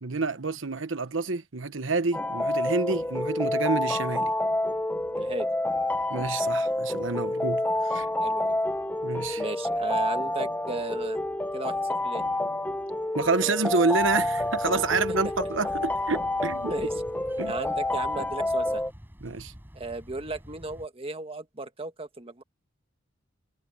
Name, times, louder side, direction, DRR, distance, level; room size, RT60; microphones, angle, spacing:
voice 1, 0.0-4.3 6.1-8.1 9.0-9.4 13.1-16.7 17.4-17.5 19.2-19.5, right 3 dB, 70° right, 1.2 m, -28 dB
sound 1, 2.1-18.9, left 1 dB, 10° left, 1.0 m, -28 dB
voice 2, 5.1-5.5 8.2-8.6 9.4-11.2 11.5-12.2 16.7-16.9 17.5-18.8 19.7-22.4, right 2 dB, 30° right, 1.6 m, -35 dB
sound 2, 14.0-20.9, equal, 10° right, 7.9 m, -47 dB
head